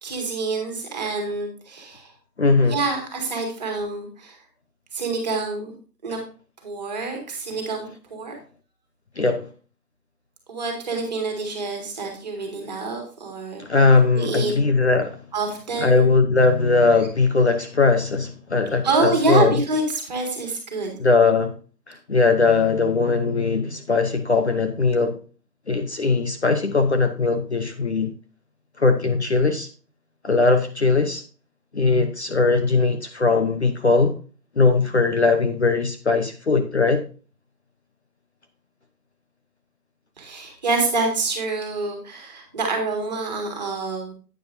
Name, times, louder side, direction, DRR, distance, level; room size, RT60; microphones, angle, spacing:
voice 1, 0.0-2.1 2.7-4.4 4.9-5.7 6.0-6.2 6.6-8.3 10.5-13.6 14.2-14.5 15.3-16.1 18.8-20.9 40.2-44.1, right 3 dB, 25° right, 2.1 m, -26 dB
voice 2, 2.4-2.8 9.2-9.5 13.6-15.2 15.8-19.6 21.0-21.5 21.9-25.2 25.7-28.1 28.8-29.7 30.2-31.2 31.7-34.2 34.6-37.0, left 3 dB, 40° left, 0.8 m, -20 dB
10.0 x 9.3 x 2.7 m
figure-of-eight pair, 165°, 50 cm